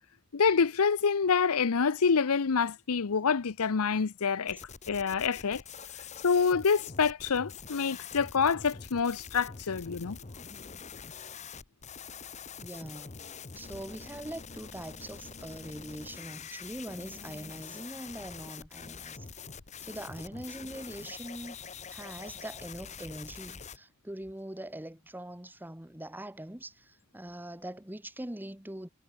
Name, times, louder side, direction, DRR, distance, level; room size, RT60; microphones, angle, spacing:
voice 1, 0.3-4.6 4.9-5.6 6.2-10.2, left 5 dB, 85° left, 0.7 m, -27 dB
sound 1, 4.5-23.8, left 6 dB, 30° left, 1.0 m, -45 dB
voice 2, 12.6-13.2 13.5-19.3 19.8-21.6 21.9-28.9, right 1 dB, 10° right, 1.2 m, -42 dB
head